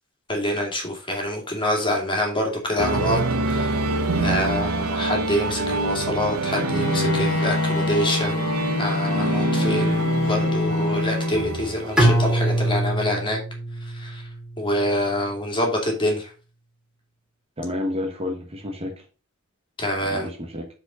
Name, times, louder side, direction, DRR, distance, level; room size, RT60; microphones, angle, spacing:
voice 1, 0.3-3.9 4.2-8.4 8.8-13.4 13.8-14.2 14.6-16.3 19.8-20.3, left 1 dB, 25° left, 2.4 m, -26 dB
sound 1, 2.8-12.7, right 2 dB, 85° right, 1.0 m, -26 dB
Bowed string instrument, 6.5-11.9, left 2 dB, 60° left, 0.7 m, -25 dB
Bowed string instrument 2, 12.0-15.0, right 1 dB, 5° right, 2.1 m, -23 dB
voice 2, 17.6-19.0 20.1-20.7, left 1 dB, 30° right, 1.2 m, -30 dB
7.5 x 4.8 x 5.0 m
head